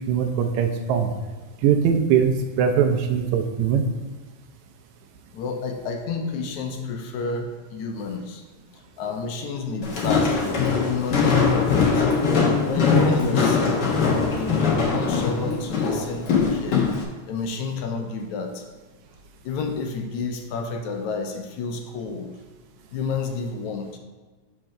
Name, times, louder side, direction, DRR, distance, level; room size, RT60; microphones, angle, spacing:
voice 1, 0.1-1.1 1.6-3.8, right 7 dB, 80° right, 5 dB, 1.8 m, -21 dB
voice 2, 5.3-8.4 8.7-12.1 12.6-16.9 17.3-18.6 19.4-22.3 22.9-24.0, left 4 dB, 75° left, 4 dB, 2.0 m, -30 dB
Walk footsteps, 9.8-17.0, left 5 dB, 60° left, 1.1 m, -21 dB
6.2 x 4.5 x 5.8 m, 1.3 s
omnidirectional pair, 3.5 m